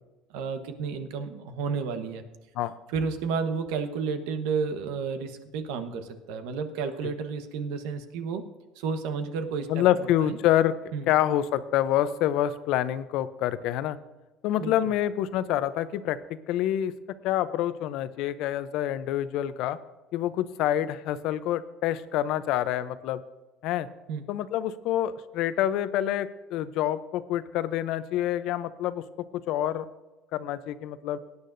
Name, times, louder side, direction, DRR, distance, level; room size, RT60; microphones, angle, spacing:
voice 1, 0.3-2.2 2.9-8.4 8.8-9.8 10.2-10.4 10.9-11.0 14.6-14.9 24.1-24.2, right 5 dB, 80° right, 8 dB, 1.1 m, -31 dB
voice 2, 9.7-10.7 11.1-14.0 14.4-16.9 17.2-19.8 20.1-23.2 23.6-23.9 24.3-29.0 29.5-29.8 30.3-31.2, left 12 dB, 65° left, 14 dB, 0.6 m, -27 dB
18.0 x 9.6 x 2.6 m, 1.2 s
cardioid pair, 115°, 0 cm